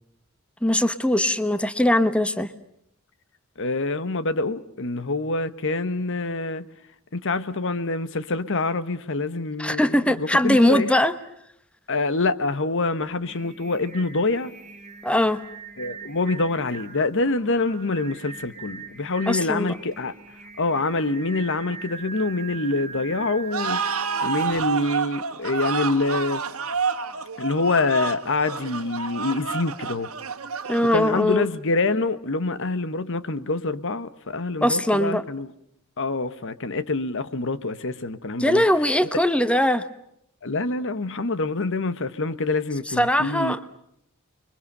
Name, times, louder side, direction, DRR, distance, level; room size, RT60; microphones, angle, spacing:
voice 1, 0.6-2.5 9.6-11.1 15.0-15.4 19.3-19.8 30.7-31.5 34.6-35.2 38.4-39.8 43.0-43.8, left 1 dB, 5° left, 1.0 m, -21 dB
voice 2, 3.6-6.7 7.1-10.9 11.9-14.5 15.8-20.1 20.6-26.4 27.4-30.1 30.9-35.5 36.0-38.6 40.4-43.6, left 3 dB, 60° left, 1.2 m, -26 dB
Singing, 13.1-24.8, right 5 dB, 30° right, 4.4 m, -41 dB
sound 1, 23.5-31.4, right 5 dB, 70° right, 1.7 m, -29 dB
30.0 x 23.5 x 6.8 m
head